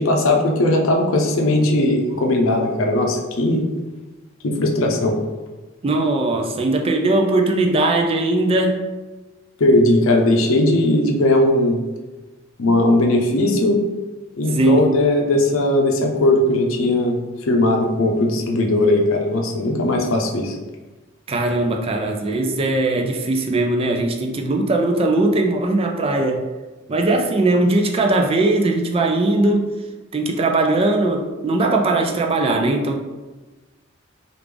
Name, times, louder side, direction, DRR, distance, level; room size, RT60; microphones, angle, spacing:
voice 1, 0.0-3.7 4.4-5.2 9.6-11.8 12.6-13.8 14.4-17.2 17.5-20.6, left 1 dB, 75° left, 2 dB, 0.6 m, -18 dB
voice 2, 5.8-8.8 14.5-15.0 21.3-26.4 26.9-29.7 30.1-33.0, right 2 dB, 30° right, 2 dB, 0.3 m, -19 dB
3.3 x 2.5 x 3.3 m, 1.2 s
head